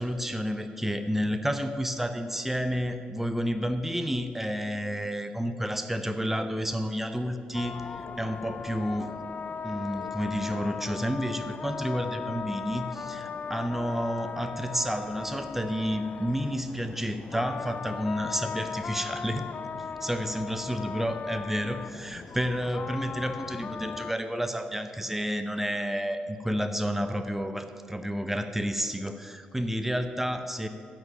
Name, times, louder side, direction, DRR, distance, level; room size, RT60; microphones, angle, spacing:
voice 1, 0.0-9.1 9.6-19.5 19.8-30.7, equal, 5° right, 8 dB, 0.8 m, -30 dB
sound 1, 7.5-24.1, left 6 dB, 40° left, 0.4 m, -38 dB
10.0 x 6.5 x 8.7 m, 2.2 s
figure-of-eight pair, 40°, 4 cm